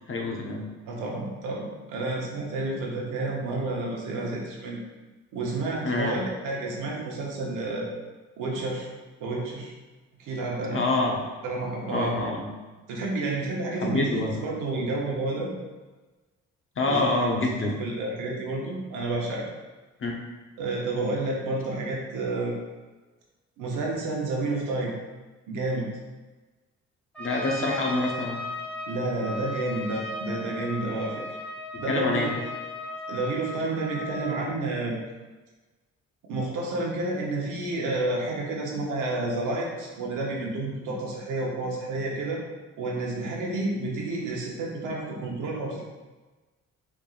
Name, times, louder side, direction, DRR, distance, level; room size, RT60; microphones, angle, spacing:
voice 1, 0.1-0.7 5.8-6.2 10.7-11.2 11.9-12.5 13.8-14.3 16.8-17.8 20.0-20.1 27.2-28.4 31.7-32.3, left 2 dB, 45° left, -1 dB, 0.9 m, -26 dB
voice 2, 0.9-4.8 5.3-7.9 8.4-8.9 9.2-9.7 10.2-10.8 11.4-12.1 12.9-15.5 16.9-17.1 17.6-19.5 20.6-22.5 23.6-24.9 25.5-25.9 28.9-31.2 31.8-32.5 33.1-35.0 36.3-42.4 42.8-45.8, right 2 dB, 90° right, -2 dB, 1.0 m, -30 dB
Trumpet, 27.1-34.5, left 1 dB, 5° left, 1.3 m, -36 dB
4.3 x 3.6 x 2.5 m, 1.2 s
cardioid pair, 90°, 30 cm